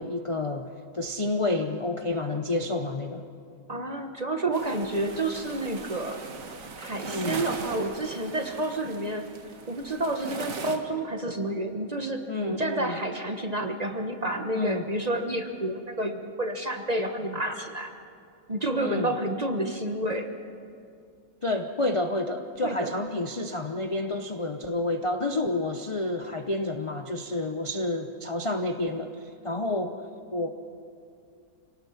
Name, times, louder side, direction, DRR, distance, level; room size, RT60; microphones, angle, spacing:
voice 1, 0.0-3.3 7.1-7.4 12.3-13.0 14.5-14.8 18.8-19.1 21.4-30.0 30.3-30.5, left 2 dB, 30° left, 6 dB, 0.5 m, -29 dB
voice 2, 3.7-6.2 6.8-9.3 9.7-17.9 18.5-20.3 22.6-22.9, right 1 dB, 30° right, 5 dB, 1.1 m, -30 dB
sound 1, 4.5-10.8, right 4 dB, 60° right, 1.8 m, -39 dB
26.5 x 18.5 x 5.8 m, 2.4 s
omnidirectional pair, 1.7 m